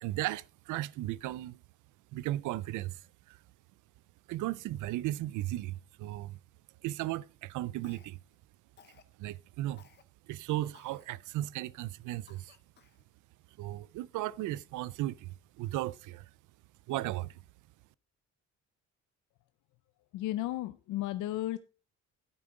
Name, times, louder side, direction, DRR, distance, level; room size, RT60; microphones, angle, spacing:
voice 1, 0.0-1.6 2.1-3.0 3.3-3.4 4.3-6.4 6.8-8.2 9.2-9.8 10.3-12.5 13.6-15.3 15.6-16.3 16.9-17.4, right 15 dB, 80° right, 0.5 m, -35 dB
Cough, 7.8-8.4 8.8-9.1 9.8-10.0 10.7-11.1 11.6-11.7 12.3-13.0, left 8 dB, 35° left, 0.8 m, -60 dB
voice 2, 20.1-21.6, left 15 dB, 85° left, 0.5 m, -34 dB
9.8 x 9.0 x 3.8 m
cardioid pair, 165°, 30 cm